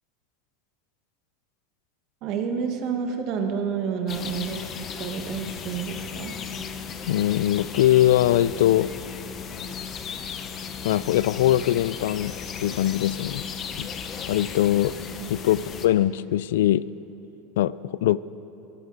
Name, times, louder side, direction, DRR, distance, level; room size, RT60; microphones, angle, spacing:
voice 1, 2.2-4.6 5.0-6.3 15.2-15.3, right 6 dB, 40° right, 4 dB, 1.4 m, -29 dB
sound 1, 4.1-15.9, left 6 dB, 25° left, 0.7 m, -35 dB
voice 2, 7.1-8.9 10.8-12.3 12.6-13.4 13.8-13.9 14.3-14.9 15.3-16.8 17.6-18.2, left 13 dB, 80° left, 19 dB, 0.3 m, -21 dB
23.0 x 14.5 x 3.9 m, 3.0 s
supercardioid pair, 170°, 0 cm